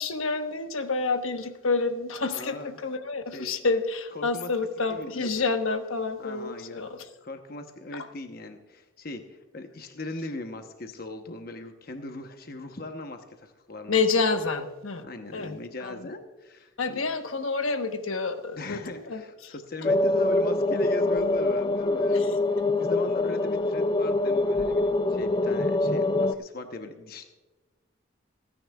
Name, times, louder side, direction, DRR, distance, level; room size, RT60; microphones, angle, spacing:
voice 1, 0.0-7.0 13.9-15.0 15.3-16.1 16.8-19.5 22.1-22.3, left 4 dB, 80° left, 7 dB, 1.1 m, -29 dB
voice 2, 2.2-2.8 3.3-3.6 4.1-4.5 4.9-5.3 6.2-6.8 7.2-14.0 15.0-17.0 18.5-27.3, left 2 dB, 45° left, 6 dB, 0.9 m, -39 dB
sound 1, 19.8-26.3, left 2 dB, 20° left, 0.4 m, -24 dB
27.5 x 9.9 x 2.3 m, 1.2 s
head